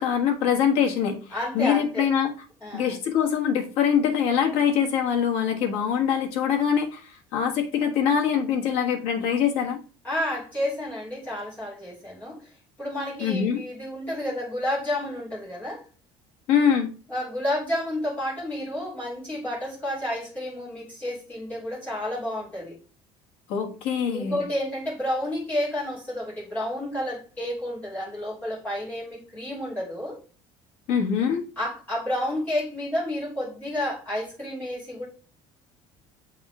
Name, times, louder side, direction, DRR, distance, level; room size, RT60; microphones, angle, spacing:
voice 1, 0.0-1.2 1.5-2.3 2.7-9.8 13.2-13.6 16.5-16.9 23.5-24.4 30.9-31.4, left 8 dB, 60° left, 2 dB, 1.4 m, -23 dB
voice 2, 1.3-2.1 2.6-2.9 10.0-12.5 12.8-15.8 17.1-22.8 24.1-30.2 31.6-35.1, left 1 dB, 15° left, -7 dB, 3.5 m, -30 dB
7.8 x 3.6 x 3.5 m, 0.37 s
cardioid pair, 170°, 12 cm